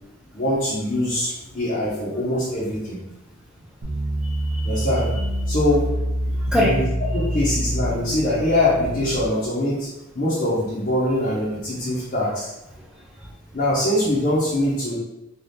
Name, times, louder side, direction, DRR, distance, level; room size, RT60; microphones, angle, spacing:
voice 1, 0.3-3.0 4.6-5.1 5.5-5.9 6.6-6.8 7.1-9.9 10.1-12.5 13.5-14.9, left 1 dB, 40° left, -8 dB, 0.7 m, -23 dB
sound 1, 3.8-9.2, right 1 dB, 75° right, 0.7 m, -26 dB
voice 2, 4.1-4.9 5.2-5.3 6.3-6.8 11.2-11.3 11.9-12.0 12.7-13.6, left 1 dB, 5° right, -3 dB, 0.5 m, -28 dB
3.4 x 2.4 x 2.7 m, 0.96 s
head